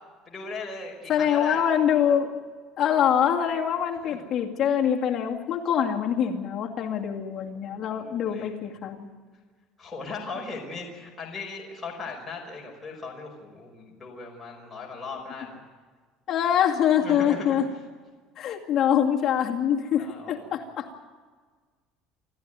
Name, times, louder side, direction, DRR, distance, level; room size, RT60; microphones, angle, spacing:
voice 1, 0.3-1.6 4.0-4.2 7.9-8.6 9.8-15.6 17.0-17.6 20.0-20.5, left 4 dB, 10° left, -2 dB, 5.2 m, -38 dB
voice 2, 1.1-2.4 2.8-9.1 16.3-17.7 18.4-21.1, left 9 dB, 35° left, -1 dB, 2.4 m, -24 dB
29.0 x 13.5 x 9.3 m, 1.5 s
cardioid pair, 160°, 0 cm